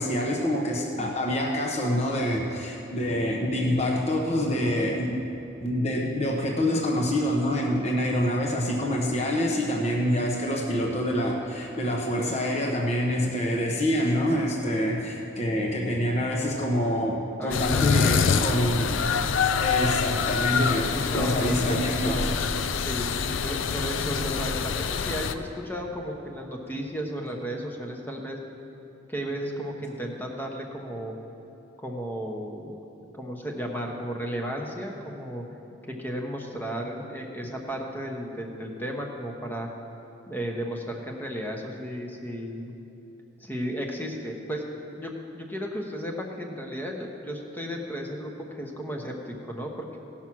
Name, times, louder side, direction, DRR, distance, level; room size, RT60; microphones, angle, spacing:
voice 1, 0.0-5.2 5.6-18.9 19.6-20.9 21.1-22.2, equal, 35° left, -1 dB, 1.0 m, -26 dB
voice 2, 17.4-18.3 20.5-21.8 22.0-22.4 22.8-28.4 29.1-31.1 31.8-32.8 33.1-35.4 35.9-39.7 40.3-42.7 43.4-44.7 45.0-50.0, equal, 10° left, 1 dB, 1.0 m, -34 dB
sound 1, 17.5-25.3, left 6 dB, 80° left, 0.5 m, -26 dB
17.0 x 5.9 x 6.2 m, 2.9 s
head